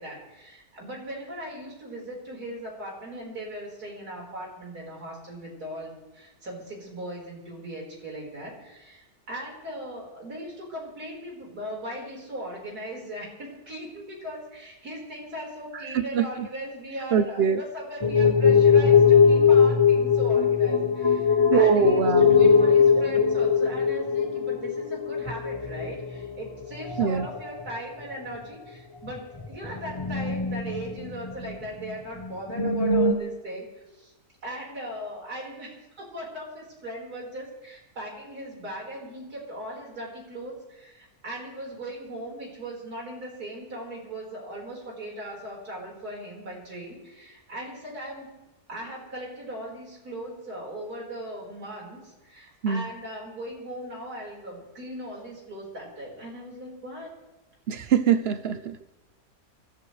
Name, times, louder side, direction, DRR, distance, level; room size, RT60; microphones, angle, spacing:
voice 1, 0.0-34.1 34.4-48.3 48.7-57.1, right 1 dB, 80° right, -2 dB, 5.1 m, -38 dB
voice 2, 15.9-16.5 17.1-17.6 21.5-22.5 27.0-27.3 52.6-52.9 57.7-58.9, right 8 dB, 55° right, 12 dB, 0.8 m, -23 dB
sound 1, 18.0-26.5 26.8-27.4 27.7-27.8 28.3-28.4 29.4-31.5 31.9-32.0 32.2-33.1, left 6 dB, 25° left, 0.6 m, -21 dB
26.5 x 14.0 x 3.2 m, 1.0 s
omnidirectional pair, 1.6 m